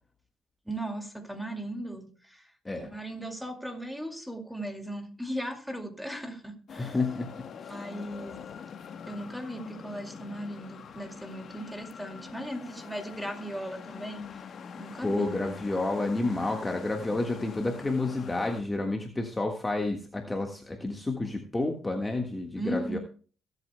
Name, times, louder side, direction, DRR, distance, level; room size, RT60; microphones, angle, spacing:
voice 1, 0.7-2.5 2.9-7.0 7.7-8.4 9.1-14.4 14.8-15.3 22.6-23.0, right 1 dB, ahead, 2.2 m, -37 dB
SF Sideshow, 6.7-18.6, left 7 dB, 60° left, 1.1 m, -44 dB
voice 2, 6.8-7.7 15.0-23.0, left 2 dB, 15° left, 1.6 m, -30 dB
21.5 x 8.3 x 2.2 m
cardioid pair, 90°, 0 cm